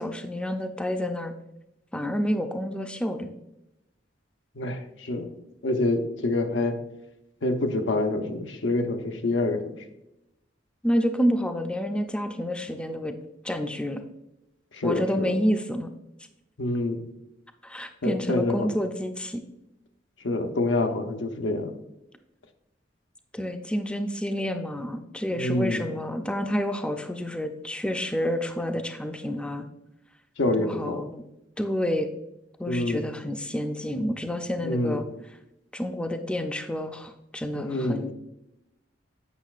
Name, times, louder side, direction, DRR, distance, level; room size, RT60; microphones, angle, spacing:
voice 1, 0.0-1.3 1.9-3.3 10.8-13.2 13.4-14.0 14.8-15.9 17.6-19.4 23.3-29.7 30.6-31.2 31.6-32.1 32.6-35.0 35.7-38.1, equal, 5° left, 6 dB, 0.4 m, -29 dB
voice 2, 4.5-5.3 5.6-6.8 7.4-9.6 14.7-15.3 16.6-17.0 18.0-18.7 20.2-21.7 25.3-25.8 30.4-31.0 32.7-33.1 34.6-35.0 37.5-38.0, left 2 dB, 85° left, 5 dB, 0.8 m, -26 dB
8.2 x 6.0 x 2.4 m, 0.89 s
head